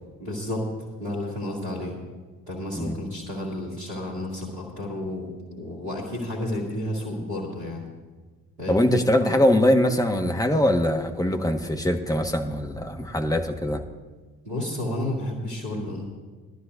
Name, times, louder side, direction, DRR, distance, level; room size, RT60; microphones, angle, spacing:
voice 1, 0.2-0.7 1.0-2.0 2.5-7.8 8.6-8.8 9.2-9.4 14.4-16.0, left 1 dB, 85° right, -6 dB, 2.2 m, -31 dB
voice 2, 8.7-13.8, left 1 dB, 10° left, 4 dB, 1.4 m, -22 dB
20.0 x 12.0 x 2.6 m, 1.4 s
figure-of-eight pair, 45°, 46 cm